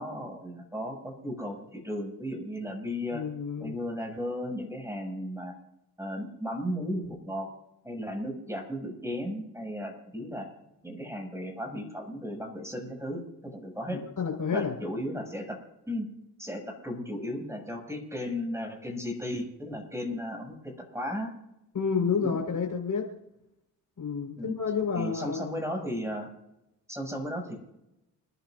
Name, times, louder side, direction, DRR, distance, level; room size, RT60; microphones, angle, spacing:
voice 1, 0.0-3.2 3.6-5.5 6.0-7.5 7.8-10.5 10.8-14.0 14.5-15.6 15.9-16.1 16.4-21.3 22.2-22.4 24.4-24.6 24.9-26.3 26.9-27.6, equal, 5° right, 1 dB, 7.2 m, -35 dB
voice 2, 3.1-3.8 13.9-14.8 21.7-23.0 24.0-25.5, left 6 dB, 45° left, 1 dB, 5.3 m, -30 dB
30.0 x 11.5 x 2.7 m, 0.87 s
supercardioid pair, 60°, 43 cm